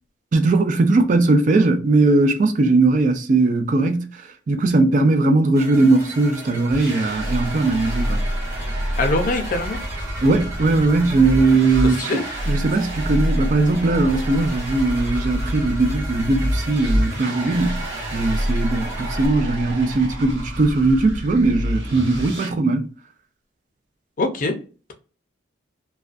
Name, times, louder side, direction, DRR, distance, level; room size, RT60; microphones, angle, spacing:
voice 1, 0.3-8.2 10.2-17.8 18.1-22.9, right 3 dB, 40° right, 0.3 m, -19 dB
sound 1, 5.5-19.3, right 1 dB, 15° right, 0.9 m, -37 dB
sound 2, 6.7-22.5, equal, 75° right, 1.0 m, -27 dB
voice 2, 9.0-9.8 11.8-12.2 24.2-24.5, left 2 dB, 45° left, 0.5 m, -23 dB
2.3 x 2.2 x 2.4 m
head